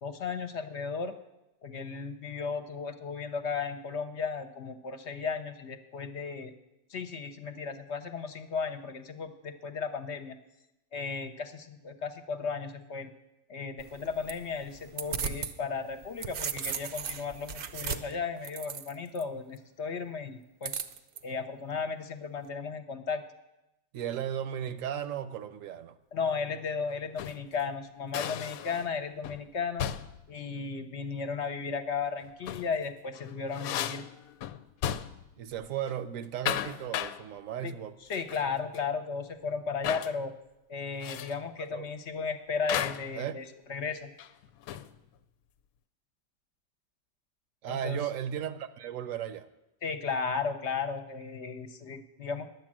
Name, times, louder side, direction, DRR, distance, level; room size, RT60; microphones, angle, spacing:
voice 1, 0.0-1.2 1.6-6.5 6.9-10.4 10.9-13.1 13.5-20.8 21.2-23.2 26.1-29.9 30.3-34.0 37.6-37.7 38.1-40.3 40.7-44.1 47.7-48.0 49.8-52.5, left 5 dB, 60° left, 8 dB, 0.9 m, -35 dB
sound 1, 13.8-15.5 15.9-19.2 20.6-21.2, right 6 dB, 55° right, 0.6 m, -36 dB
voice 2, 23.9-26.0 35.4-37.9 41.7-41.9 43.2-43.4 47.6-49.5, right 9 dB, 70° right, 12 dB, 1.0 m, -35 dB
sound 2, 27.0-27.5 28.1-29.0 29.2-29.5 29.8-30.3 32.2-32.8 33.1-35.3 35.6-35.9 36.2-37.2 38.1-38.5 38.7-38.8 39.8-40.2 41.0-41.4 42.7-43.1 44.2-45.0, left 10 dB, 85° left, 1.0 m, -35 dB
10.5 x 8.4 x 7.4 m, 0.94 s
omnidirectional pair, 1.5 m